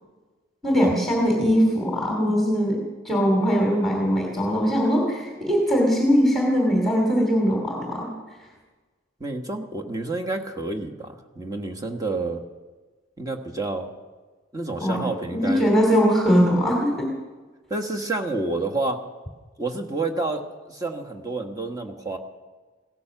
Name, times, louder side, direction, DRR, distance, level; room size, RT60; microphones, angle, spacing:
voice 1, 0.6-2.8 3.0-8.1 14.8-15.0 15.3-17.1, equal, ahead, -1 dB, 2.7 m, -21 dB
voice 2, 9.2-12.4 13.2-13.9 14.5-15.7 17.7-19.0 19.6-22.2, right 2 dB, 20° right, 3 dB, 1.3 m, -29 dB
16.5 x 13.5 x 6.0 m, 1.3 s
head